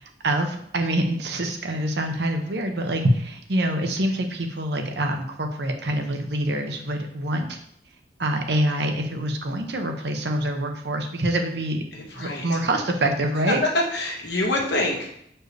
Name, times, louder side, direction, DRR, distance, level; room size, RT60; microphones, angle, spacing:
voice 1, 0.2-7.6 8.2-11.8 12.2-13.6, right 1 dB, 65° right, 4 dB, 0.8 m, -25 dB
voice 2, 11.9-12.4 13.6-15.2, left 1 dB, 75° left, -1 dB, 1.5 m, -25 dB
6.6 x 4.4 x 3.3 m, 0.70 s
head